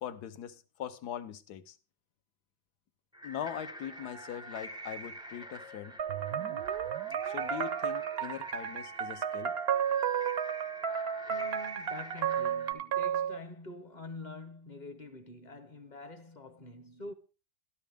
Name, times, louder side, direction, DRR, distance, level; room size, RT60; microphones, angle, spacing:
voice 1, 0.0-1.8 3.2-6.0 7.3-9.5, left 10 dB, 75° left, 1.4 m, -41 dB
sound 1, 3.1-12.7, equal, 5° right, 0.5 m, -46 dB
sound 2, 6.0-13.4, right 8 dB, 55° right, 0.7 m, -33 dB
sound 3, 6.1-11.8, right 11 dB, 80° right, 1.3 m, -46 dB
voice 2, 11.3-17.1, left 2 dB, 35° left, 0.8 m, -46 dB
12.5 x 12.5 x 3.5 m
omnidirectional pair, 1.8 m